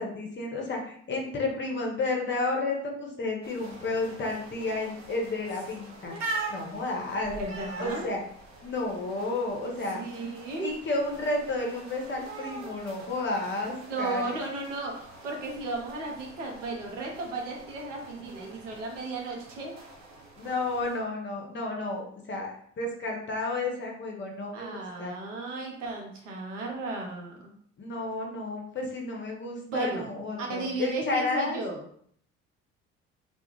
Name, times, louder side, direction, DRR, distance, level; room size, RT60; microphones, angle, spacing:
voice 1, 0.0-7.3 7.8-8.2 8.6-10.0 10.6-14.4 20.4-24.7 25.0-25.1 27.8-31.6, left 2 dB, 30° left, 0 dB, 0.7 m, -31 dB
sound 1, 3.4-21.0, right 3 dB, 50° right, 0.8 m, -43 dB
voice 2, 7.3-8.1 9.9-10.7 13.8-19.8 24.5-27.6 29.7-30.1 30.4-31.8, right 3 dB, 85° right, 0 dB, 0.6 m, -34 dB
2.3 x 2.2 x 2.9 m, 0.63 s
hypercardioid pair, 55°, 36 cm